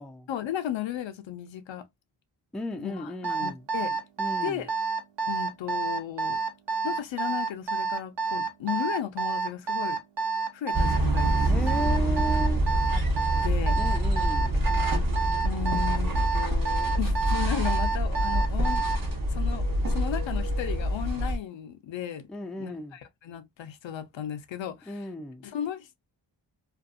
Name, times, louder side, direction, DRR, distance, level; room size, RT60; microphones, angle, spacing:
voice 1, 0.3-1.9 2.8-3.1 3.4-4.0 4.4-4.7 5.3-6.4 6.8-10.0 10.5-11.7 12.9-13.0 13.4-13.8 14.5-14.6 15.4-18.9 19.3-22.3 22.6-25.1 25.4-26.1, left 10 dB, 75° left, 0.6 m, -35 dB
voice 2, 2.5-3.6 4.2-4.6 11.4-12.7 13.8-14.6 22.3-23.0 24.9-25.5, left 1 dB, ahead, 0.3 m, -35 dB
Alarm, 3.2-19.0, right 5 dB, 65° right, 0.9 m, -29 dB
sound 1, 10.7-21.4, right 1 dB, 45° right, 1.0 m, -26 dB
2.5 x 2.3 x 2.4 m
cardioid pair, 65°, 46 cm